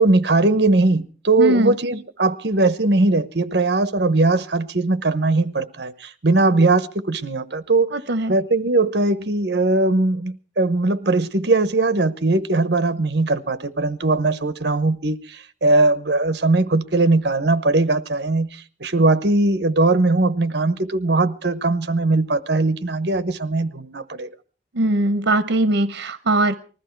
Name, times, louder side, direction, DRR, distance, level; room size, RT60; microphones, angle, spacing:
voice 1, 0.0-7.9 8.3-24.3, right 2 dB, 65° right, 1.0 m, -20 dB
voice 2, 1.4-1.7 7.9-8.3 24.7-26.5, right 1 dB, 85° right, 0.8 m, -20 dB
20.0 x 14.0 x 4.6 m
head